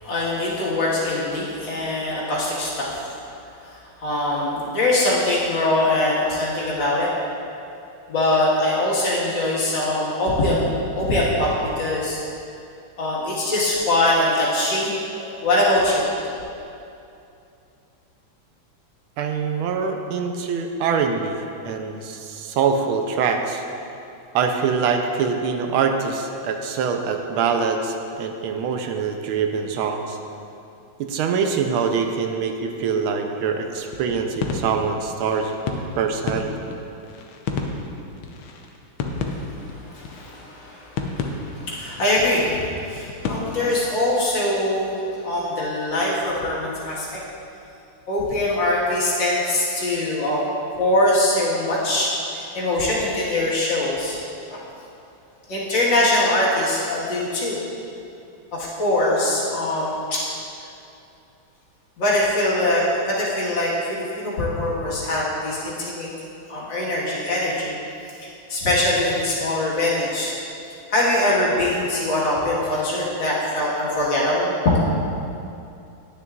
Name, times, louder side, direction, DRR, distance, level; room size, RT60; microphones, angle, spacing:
voice 1, 0.0-3.1 3.6-7.1 8.1-11.5 11.8-12.2 13.0-16.1 39.2-47.2 48.1-50.4 50.8-54.2 54.5-54.6 55.5-57.6 58.5-60.2 62.0-66.1 66.5-67.7 68.2-70.3 70.9-74.9, left 1 dB, 65° left, -7 dB, 2.3 m, -22 dB
voice 2, 19.2-21.4 21.6-23.6 24.3-30.2 31.0-35.5 36.0-36.5, right 6 dB, 85° right, 5 dB, 1.5 m, -24 dB
sound 1, 33.8-43.3, left 4 dB, 80° left, 1.5 m, -32 dB
10.0 x 9.3 x 2.4 m, 2.7 s
omnidirectional pair, 2.3 m